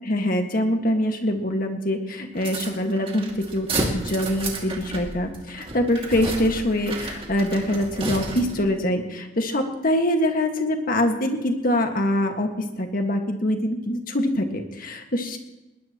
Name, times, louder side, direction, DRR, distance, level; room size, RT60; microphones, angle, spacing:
voice 1, 0.0-15.4, left 1 dB, 50° left, 4 dB, 1.8 m, -24 dB
sound 1, 2.4-8.7, right 2 dB, 30° right, 2.3 m, -32 dB
20.5 x 19.5 x 3.0 m, 1.0 s
head